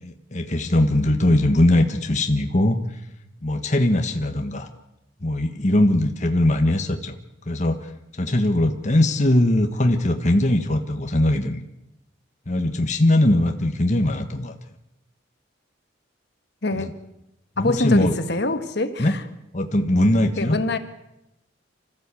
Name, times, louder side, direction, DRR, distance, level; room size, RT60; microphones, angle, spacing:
voice 1, 0.0-2.8 3.4-4.7 5.2-7.1 7.5-11.6 12.5-14.5 16.8-16.9 17.6-18.1 19.0-19.1 19.5-20.6, left 1 dB, 40° left, 5 dB, 1.4 m, -20 dB
voice 2, 16.6-16.9 17.6-19.2 20.4-20.8, left 2 dB, 60° left, 9 dB, 1.6 m, -24 dB
26.0 x 15.0 x 8.4 m, 0.90 s
head